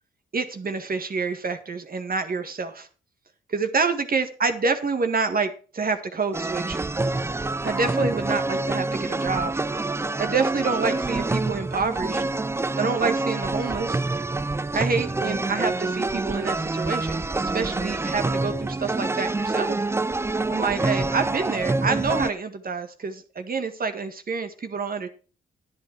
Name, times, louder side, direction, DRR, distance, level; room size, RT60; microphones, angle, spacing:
voice 1, 0.3-2.9 3.5-6.8 7.6-9.5 10.2-12.2 12.8-14.0 14.7-19.8 20.5-25.1, right 4 dB, 45° right, 8 dB, 1.8 m, -27 dB
sound 1, 6.3-22.3, right 2 dB, 15° right, 0.4 m, -26 dB
10.0 x 9.2 x 4.7 m, 0.37 s
cardioid pair, 65°, 20 cm